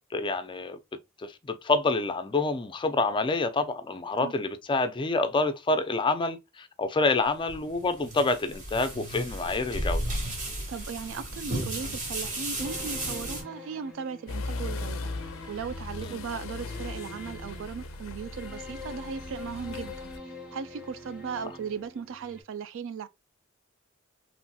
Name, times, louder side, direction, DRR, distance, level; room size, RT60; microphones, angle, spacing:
voice 1, 0.1-0.8 1.2-10.0 16.0-16.2, left 3 dB, 25° left, 0.4 m, -27 dB
sound 1, 7.3-13.4, right 1 dB, 40° right, 1.3 m, -34 dB
voice 2, 10.7-15.1 15.5-20.1 20.5-23.1, right 6 dB, 70° right, 0.3 m, -37 dB
sound 2, 12.6-22.4, left 2 dB, 5° right, 0.9 m, -45 dB
sound 3, 14.3-20.2, left 3 dB, 85° left, 0.4 m, -38 dB
3.0 x 2.7 x 2.2 m
head